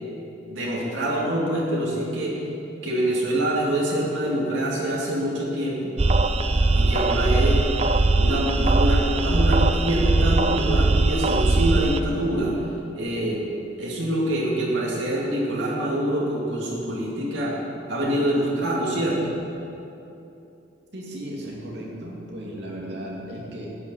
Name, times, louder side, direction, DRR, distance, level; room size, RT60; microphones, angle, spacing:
voice 1, 0.5-2.4 2.8-5.9 6.7-7.7 8.2-12.6 12.9-13.4 13.8-17.6 17.9-19.4, right 1 dB, 80° right, -5 dB, 2.3 m, -25 dB
sound 1, 6.0-12.0, right 2 dB, 35° right, 0.5 m, -20 dB
voice 2, 20.9-23.7, right 1 dB, 60° right, -4 dB, 2.6 m, -35 dB
12.0 x 6.7 x 8.2 m, 2.8 s
head